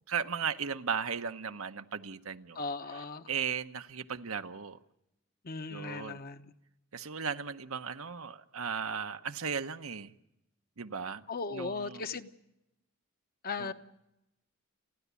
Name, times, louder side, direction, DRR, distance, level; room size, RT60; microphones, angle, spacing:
voice 1, 0.1-2.6 2.9-4.8 5.7-6.2 6.9-10.1 10.8-11.2 11.5-12.1 13.6-13.7, right 6 dB, 75° right, 1.0 m, -36 dB
voice 2, 2.6-3.3 5.4-6.5 11.3-12.3 13.4-13.7, left 4 dB, 45° left, 1.0 m, -37 dB
30.0 x 11.5 x 8.3 m
head